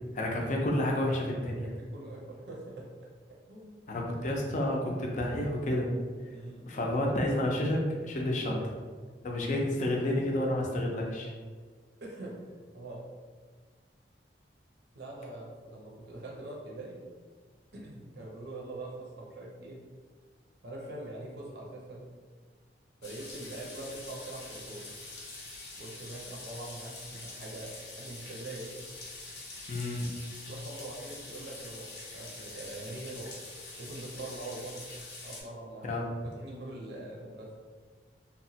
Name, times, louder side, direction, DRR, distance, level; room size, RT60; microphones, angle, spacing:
voice 1, 0.1-1.7 3.9-5.9 6.7-8.6 9.2-11.3 29.7-30.1 35.8-36.0, left 1 dB, 45° left, 0 dB, 0.4 m, -30 dB
voice 2, 1.6-2.9 3.5-3.7 6.3-6.7 9.7-9.9 12.0-12.3 12.7-13.0 14.9-17.0 17.7-19.8 20.6-22.0 23.0-24.8 25.8-28.8 30.5-31.9 32.1-33.3 33.8-34.9 35.2-35.9 36.2-37.5, right 2 dB, 70° right, -2 dB, 0.6 m, -43 dB
sound 1, 23.0-35.4, left 2 dB, 85° left, 0.7 m, -45 dB
2.8 x 2.1 x 2.7 m, 1.5 s
head